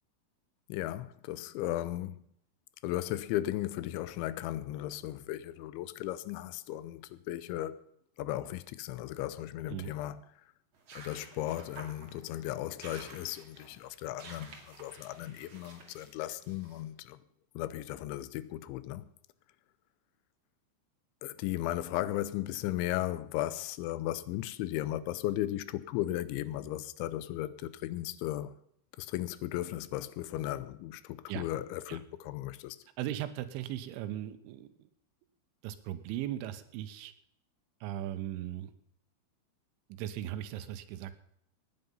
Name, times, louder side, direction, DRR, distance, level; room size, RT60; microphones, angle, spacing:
voice 1, 0.7-2.3 2.8-7.8 8.2-10.2 11.0-17.2 17.6-19.1 21.2-28.5 29.0-32.8, left 14 dB, 80° left, 3.0 m, -36 dB
sound 1, 10.7-16.9, right 4 dB, 40° right, 2.0 m, -52 dB
voice 2, 33.0-34.9 35.6-37.1 37.8-38.7 39.9-41.1, right 12 dB, 90° right, 3.4 m, -38 dB
18.0 x 9.3 x 5.4 m
omnidirectional pair, 5.5 m